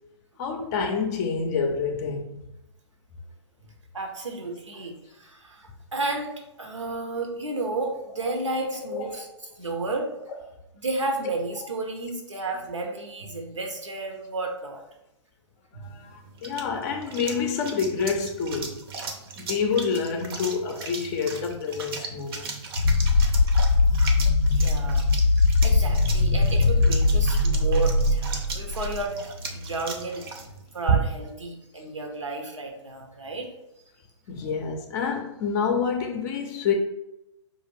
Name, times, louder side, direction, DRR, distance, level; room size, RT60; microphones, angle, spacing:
voice 1, 0.4-2.4 8.8-9.1 11.6-11.7 15.8-18.8 19.4-22.6 34.3-36.7, left 6 dB, 35° left, 4 dB, 0.5 m, -28 dB
voice 2, 3.9-6.3 6.6-9.3 9.6-10.1 10.8-14.8 15.7-15.8 23.9-24.0 24.5-30.2 30.7-33.5, right 2 dB, 85° right, 2 dB, 1.0 m, -32 dB
sound 1, 15.8-31.4, right 5 dB, 50° right, 0.7 m, -35 dB
sound 2, 22.8-29.0, left 3 dB, 85° left, 0.5 m, -21 dB
4.8 x 2.5 x 3.3 m, 0.87 s
figure-of-eight pair, 115°, 15 cm